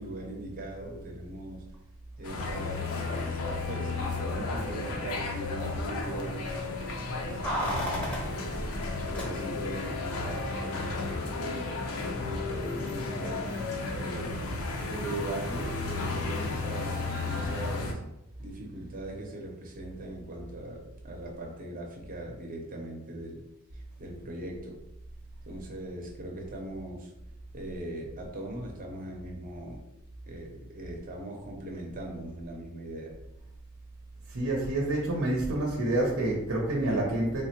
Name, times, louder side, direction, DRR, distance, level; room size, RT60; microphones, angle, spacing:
voice 1, 0.0-1.6 2.2-2.9 3.2-6.8 7.1-8.5 9.0-11.8 12.3-13.5 13.9-14.4 14.8-18.0 18.4-23.4 23.7-24.8 25.4-27.1 27.5-29.8 30.2-33.2, right 1 dB, 40° right, 0 dB, 0.6 m, -40 dB
sound 1, 2.2-17.9, left 3 dB, 75° left, 0.5 m, -33 dB
Keys jangling, 7.4-9.8 10.0-10.1, equal, 5° left, 0.6 m, -34 dB
voice 2, 34.3-37.4, right 1 dB, 80° right, -3 dB, 0.6 m, -28 dB
3.3 x 2.1 x 2.8 m, 0.88 s
head